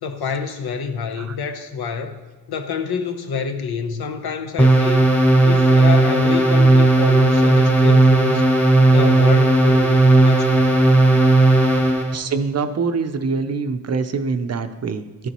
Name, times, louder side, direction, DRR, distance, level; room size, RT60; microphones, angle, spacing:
voice 1, 0.0-2.2 2.5-5.1 5.4-10.9, left 6 dB, 80° left, 0.9 m, -27 dB
sound 1, 4.6-12.1, right 2 dB, 5° left, 1.0 m, -14 dB
voice 2, 12.1-15.3, right 4 dB, 45° right, 0.5 m, -24 dB
13.5 x 6.9 x 3.0 m
wide cardioid pair, 125°, 37 cm